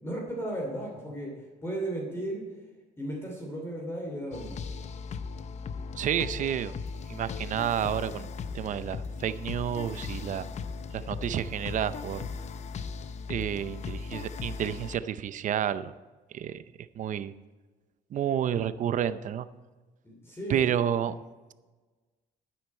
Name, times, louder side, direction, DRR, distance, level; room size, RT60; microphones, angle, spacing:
voice 1, 0.0-2.4 3.0-4.6 20.0-20.8, right 1 dB, 15° left, -1 dB, 2.9 m, -35 dB
sound 1, 4.3-15.0, left 5 dB, 40° left, 0.6 m, -38 dB
voice 2, 6.0-6.7 7.1-10.5 10.9-12.3 13.3-15.9 16.3-16.6 17.0-17.3 18.1-19.5 20.5-21.1, right 9 dB, 50° right, 14 dB, 0.6 m, -30 dB
12.0 x 9.5 x 4.4 m, 1.3 s
cardioid pair, 110°, 17 cm